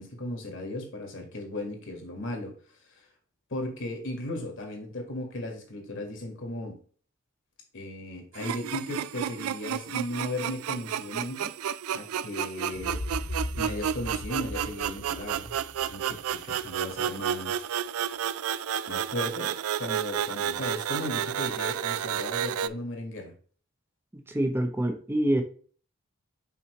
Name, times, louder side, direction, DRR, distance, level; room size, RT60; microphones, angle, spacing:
voice 1, 0.0-3.0 3.5-6.8 7.7-11.5 11.9-13.2 13.5-15.6 15.9-17.6 18.8-23.3, left 1 dB, 60° left, 1.7 m, -36 dB
sound 1, 8.3-22.7, right 9 dB, 80° right, 0.3 m, -31 dB
sound 2, 12.7-16.6, left 1 dB, 35° left, 0.5 m, -37 dB
voice 2, 24.1-25.4, right 1 dB, 10° right, 0.6 m, -26 dB
5.8 x 5.3 x 3.1 m
head